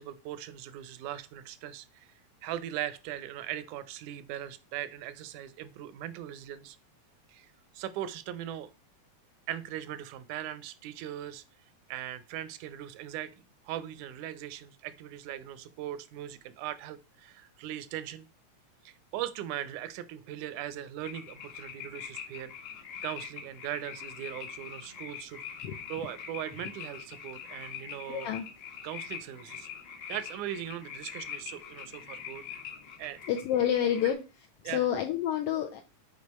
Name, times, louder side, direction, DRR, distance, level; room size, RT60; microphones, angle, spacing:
voice 1, 0.0-2.1 2.4-6.8 7.3-7.5 7.7-8.7 9.5-11.4 11.9-13.3 13.7-18.3 18.9-22.5 23.0-25.4 25.9-28.3 28.8-29.7 30.1-32.6 33.0-33.2 34.7-34.8, right 11 dB, 85° right, 14 dB, 2.1 m, -39 dB
sound 1, 21.0-34.1, left 8 dB, 55° left, 1.4 m, -43 dB
voice 2, 28.1-28.5 33.3-34.2 34.6-35.8, left 10 dB, 85° left, 4 dB, 1.3 m, -28 dB
6.4 x 4.8 x 4.1 m, 0.31 s
omnidirectional pair, 3.4 m